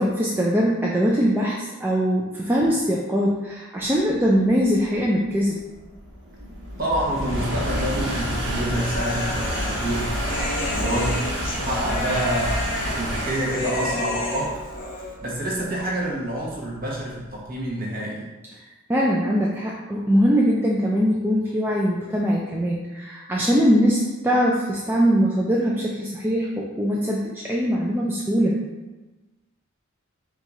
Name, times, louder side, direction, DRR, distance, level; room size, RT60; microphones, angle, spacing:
voice 1, 0.0-5.6 18.9-28.6, equal, 10° right, -4 dB, 0.3 m, -22 dB
sound 1, 4.2-17.5, equal, 60° right, 1.3 m, -29 dB
voice 2, 6.8-10.2 10.7-11.2 11.5-14.6 15.2-18.3, right 1 dB, 40° right, -4 dB, 1.0 m, -27 dB
Human voice, 8.7-15.1, left 2 dB, 40° left, 0.6 m, -31 dB
4.5 x 2.4 x 4.0 m, 1.2 s
head